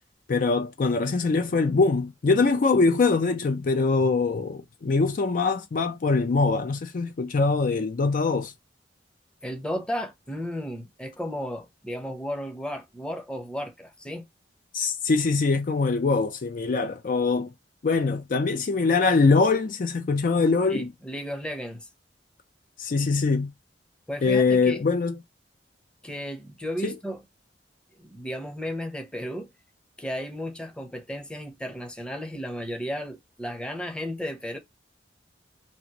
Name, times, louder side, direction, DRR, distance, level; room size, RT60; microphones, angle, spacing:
voice 1, 0.3-8.5 14.7-17.5 17.8-20.9 22.8-23.5 24.2-25.2 26.8-26.9, left 4 dB, 50° left, 0.4 m, -23 dB
voice 2, 9.4-14.3 20.7-21.9 24.1-24.8 26.0-27.2 28.0-29.5 30.0-34.6, equal, 5° left, 0.7 m, -34 dB
2.8 x 2.5 x 2.8 m
head